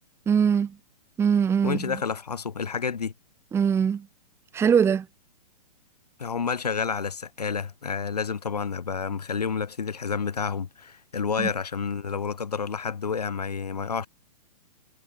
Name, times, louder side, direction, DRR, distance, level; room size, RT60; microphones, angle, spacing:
voice 1, 0.3-0.7 1.2-2.0 3.5-4.0 4.5-5.0 11.4-11.5, right 7 dB, 10° right, 1.3 m, -22 dB
voice 2, 1.6-3.1 6.2-14.1, left 6 dB, 65° left, 5.1 m, -29 dB
figure-of-eight pair, 115°, 21 cm